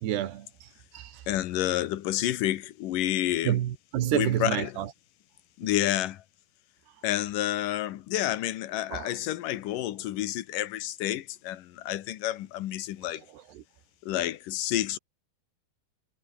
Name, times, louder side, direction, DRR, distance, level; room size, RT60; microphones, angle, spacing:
voice 1, 0.0-0.5 0.9-1.2 3.5-4.9 8.9-9.1 13.3-13.6, right 12 dB, 85° right, 3.9 m, -29 dB
voice 2, 1.3-3.6 4.1-4.7 5.6-6.2 7.0-13.2 14.0-15.0, left 13 dB, 65° left, 2.5 m, -29 dB
omnidirectional pair, 4.6 m